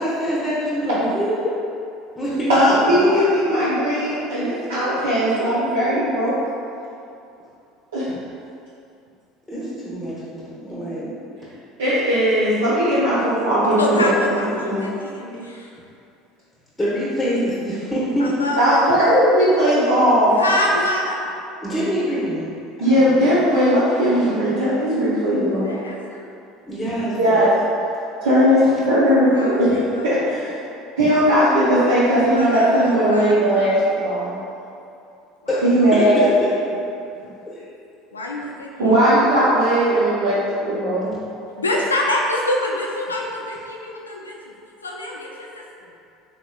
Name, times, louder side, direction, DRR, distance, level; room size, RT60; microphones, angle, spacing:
voice 1, 0.0-1.5 2.2-3.0 9.5-11.1 16.8-18.4 20.5-20.6 21.6-22.5 22.8-23.3 26.7-27.4 35.5-36.3, equal, 5° left, -9 dB, 0.9 m, -25 dB
voice 2, 2.5-6.3 7.9-8.1 11.8-14.3 14.6-14.9 18.6-20.3 22.8-25.7 27.1-27.5 28.2-29.8 30.0-30.5 31.0-34.4 35.6-36.3 38.8-41.1, equal, 70° right, -11 dB, 0.6 m, -18 dB
voice 3, 13.8-15.7 18.2-19.3 20.3-21.4 25.5-26.3 29.3-30.2 32.3-33.8 35.4-35.6 36.4-36.8 38.1-39.3 41.6-44.5 44.8-45.9, left 1 dB, 80° left, -1 dB, 0.4 m, -27 dB
4.1 x 3.5 x 2.3 m, 2.6 s
figure-of-eight pair, 65°, 0 cm